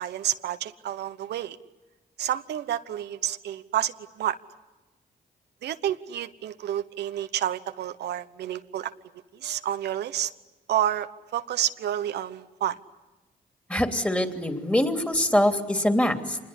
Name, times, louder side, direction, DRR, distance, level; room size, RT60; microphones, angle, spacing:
voice 1, 0.0-1.6 2.2-4.4 5.6-8.9 9.3-10.3 10.7-11.1 11.3-12.8, right 11 dB, 85° right, 10 dB, 1.0 m, -29 dB
voice 2, 13.7-16.4, left 1 dB, 10° left, 7 dB, 3.0 m, -24 dB
26.0 x 21.0 x 9.9 m, 1.1 s
cardioid pair, 80°, 17 cm